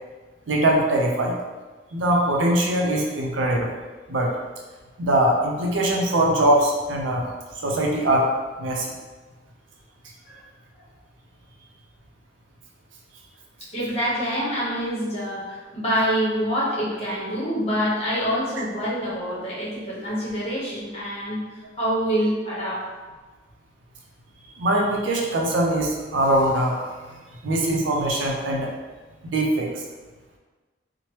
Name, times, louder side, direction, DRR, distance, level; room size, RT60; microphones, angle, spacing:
voice 1, 0.5-1.4 1.9-3.7 4.1-4.3 5.0-7.2 7.6-8.3 8.6-8.9 18.6-18.7 24.6-27.2 27.4-28.7 29.2-29.8, right 1 dB, 80° right, -1 dB, 0.5 m, -22 dB
voice 2, 13.7-21.4 21.8-22.9, equal, 35° left, -8 dB, 1.0 m, -26 dB
2.9 x 2.1 x 3.1 m, 1.3 s
head